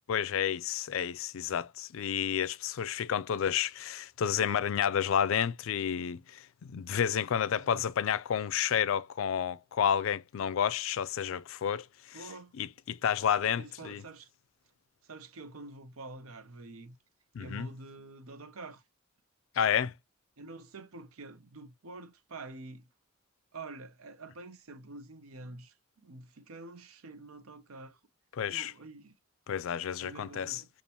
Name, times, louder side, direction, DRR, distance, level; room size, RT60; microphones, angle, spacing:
voice 1, 0.1-6.4 6.7-12.2 12.6-14.0 17.3-17.7 19.6-19.9 28.4-28.7 29.5-30.6, left 8 dB, 65° left, 0.4 m, -30 dB
voice 2, 7.5-7.9 12.1-12.5 13.6-14.3 15.0-17.0 17.4-18.8 20.4-22.9 23.5-28.0 28.5-29.1 30.0-30.7, right 3 dB, 90° right, 0.7 m, -47 dB
6.8 x 2.4 x 2.7 m
head